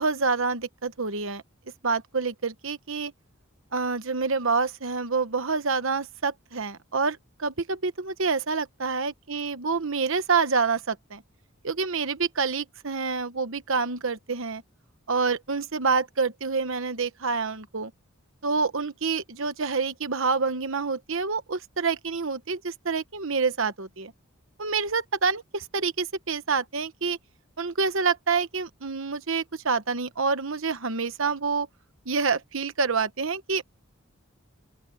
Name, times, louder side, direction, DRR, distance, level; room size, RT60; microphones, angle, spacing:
voice 1, 0.0-1.4 1.8-3.1 3.7-11.2 11.6-14.6 15.1-17.9 18.4-24.1 24.6-27.2 27.6-31.7 32.1-33.6, right 4 dB, 65° right, 1.1 m, -27 dB
open air
head